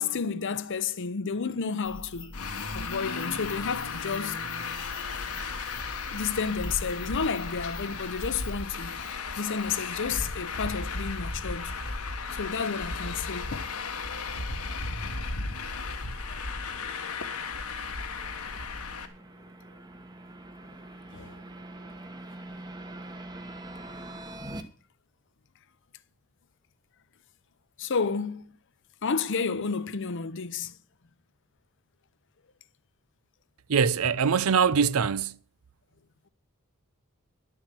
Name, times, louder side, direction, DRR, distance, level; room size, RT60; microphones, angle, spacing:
voice 1, 0.0-2.3 2.7-4.4 6.1-9.1 9.4-11.8 12.3-13.7 16.3-16.4 21.1-21.4 27.8-28.5 29.0-30.7, left 5 dB, 60° left, 0.7 m, -31 dB
sound 1, 1.8-8.6, left 3 dB, 20° left, 0.9 m, -45 dB
Traffic noise roadway noise, 2.3-19.1, left 4 dB, 90° left, 1.5 m, -35 dB
sound 2, 13.8-24.6, right 1 dB, 20° right, 1.2 m, -45 dB
voice 2, 33.7-35.4, right 6 dB, 75° right, 0.6 m, -23 dB
11.5 x 7.4 x 7.5 m
head